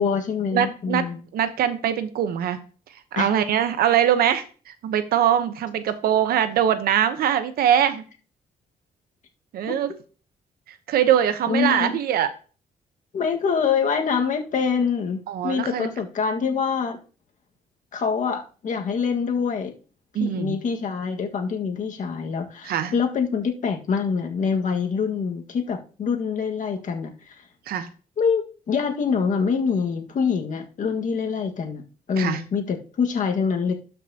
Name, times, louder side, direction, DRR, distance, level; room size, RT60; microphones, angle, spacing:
voice 1, 0.0-1.2 3.2-3.3 9.7-9.8 11.5-12.0 13.1-17.0 17.9-19.7 20.2-27.5 28.2-31.8 32.1-33.7, left 6 dB, 55° left, 3 dB, 1.8 m, -25 dB
voice 2, 0.5-1.0 1.3-2.6 3.1-8.0 9.5-9.9 10.9-12.3 15.3-15.9 20.1-20.6 22.6-23.0 27.7-27.9 32.2-32.4, right 10 dB, 85° right, 11 dB, 1.0 m, -22 dB
12.0 x 5.9 x 2.9 m, 0.37 s
cardioid pair, 110°, 15 cm